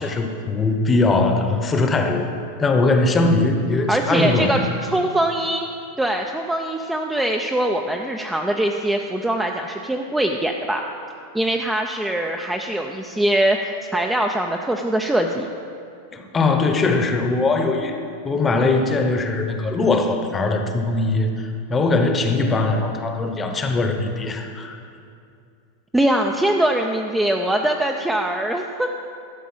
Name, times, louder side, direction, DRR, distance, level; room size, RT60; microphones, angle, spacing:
voice 1, 0.0-2.3 2.6-4.6 16.1-17.9 18.2-24.8, left 3 dB, 15° left, 5 dB, 0.9 m, -20 dB
voice 2, 3.9-5.7 6.0-10.8 11.3-15.5 25.9-28.9, right 1 dB, 5° right, 2 dB, 0.4 m, -22 dB
12.5 x 5.1 x 7.8 m, 2.5 s
supercardioid pair, 150°, 0 cm